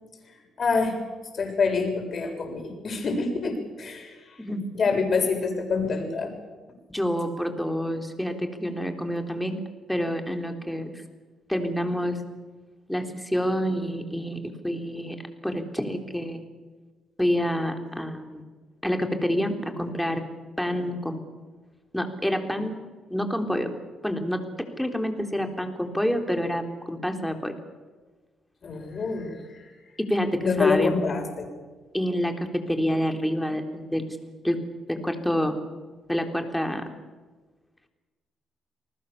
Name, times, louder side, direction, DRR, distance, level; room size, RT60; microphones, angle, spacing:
voice 1, 0.6-1.0 1.3-4.4 4.7-6.3 28.6-29.7 30.4-31.5, left 4 dB, 45° left, 3 dB, 6.8 m, -26 dB
voice 2, 6.9-9.6 9.9-11.0 11.5-12.2 12.9-15.2 15.4-16.4 17.2-18.4 18.8-20.2 20.6-21.2 21.9-22.8 23.1-23.7 24.0-24.4 24.8-27.5 30.0-30.3 30.6-31.0 31.9-32.3 32.7-34.2 34.4-34.6 34.9-35.6 36.1-36.8, equal, 5° left, 5 dB, 3.5 m, -27 dB
29.0 x 19.5 x 7.2 m, 1.3 s
cardioid pair, 90°, 0 cm